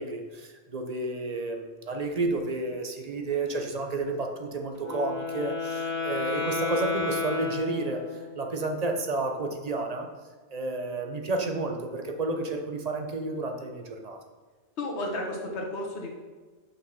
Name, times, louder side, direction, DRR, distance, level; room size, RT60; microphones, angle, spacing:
voice 1, 0.0-10.1 10.5-14.2, right 2 dB, 40° right, 3 dB, 0.9 m, -31 dB
Wind instrument woodwind instrument, 4.7-8.4, left 4 dB, 40° left, 1.6 m, -32 dB
voice 2, 14.8-16.2, left 1 dB, 70° left, -1 dB, 1.5 m, -32 dB
5.7 x 5.7 x 5.8 m, 1.4 s
omnidirectional pair, 1.2 m